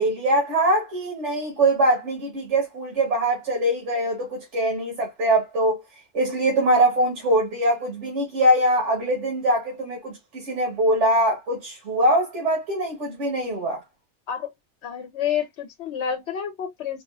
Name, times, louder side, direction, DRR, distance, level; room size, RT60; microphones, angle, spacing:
voice 1, 0.0-5.8 6.1-13.8, right 1 dB, 80° right, 1.7 m, -22 dB
voice 2, 14.8-17.0, left 8 dB, 70° left, 0.9 m, -29 dB
4.4 x 2.4 x 2.2 m
omnidirectional pair, 1.2 m